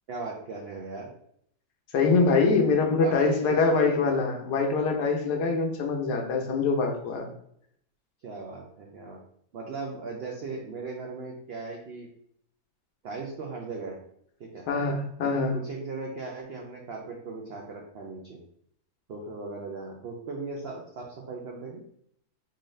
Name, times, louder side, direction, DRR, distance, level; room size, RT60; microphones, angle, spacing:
voice 1, 0.1-1.1 3.0-4.0 8.2-9.2 9.5-12.1 13.0-14.0 14.4-14.7 15.2-18.4 19.1-21.8, right 3 dB, 80° right, 0 dB, 0.5 m, -38 dB
voice 2, 1.9-7.3 14.7-15.6, left 4 dB, 85° left, 2 dB, 1.3 m, -24 dB
3.9 x 2.5 x 3.1 m, 0.69 s
omnidirectional pair, 1.7 m